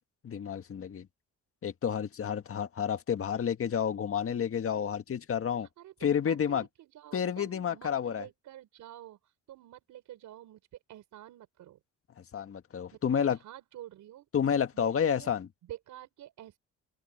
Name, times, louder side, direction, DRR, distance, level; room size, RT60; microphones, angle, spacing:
voice 1, 0.2-1.1 1.6-5.7 6.0-6.7 7.1-8.2 12.3-13.4 14.3-15.5, left 8 dB, 50° left, 1.7 m, -30 dB
voice 2, 5.6-10.6 10.9-11.8 12.9-14.3 14.7-15.3 15.6-16.6, right 13 dB, 80° right, 5.1 m, -49 dB
cardioid pair, 90°, 30 cm